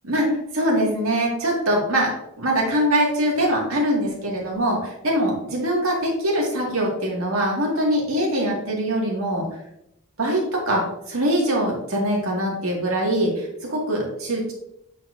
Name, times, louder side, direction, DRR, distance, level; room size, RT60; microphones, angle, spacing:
voice 1, 0.0-9.5 10.2-14.5, equal, 75° right, -2 dB, 2.1 m, -23 dB
9.1 x 4.4 x 2.6 m, 0.79 s
head